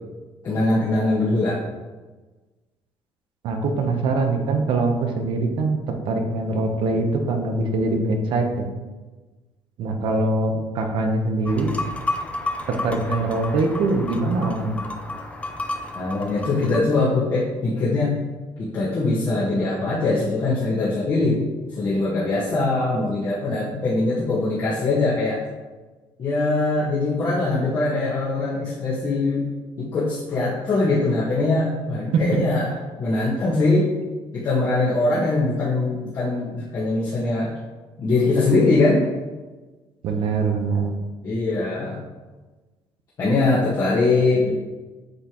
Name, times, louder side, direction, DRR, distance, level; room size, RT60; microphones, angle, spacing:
voice 1, 0.4-1.6 15.9-18.2 18.6-21.5 21.8-25.4 26.2-29.4 29.8-32.7 33.0-33.9 34.3-37.5 38.0-39.1 41.2-42.0 43.2-44.5, left 2 dB, 40° left, -8 dB, 1.6 m, -22 dB
voice 2, 3.4-8.7 9.8-11.7 12.7-14.8 32.1-32.2 40.0-40.9, right 3 dB, 65° right, 4 dB, 1.0 m, -23 dB
sound 1, 11.4-16.8, left 2 dB, 15° left, 0.5 m, -31 dB
8.2 x 5.6 x 3.1 m, 1.3 s
cardioid pair, 140°, 9 cm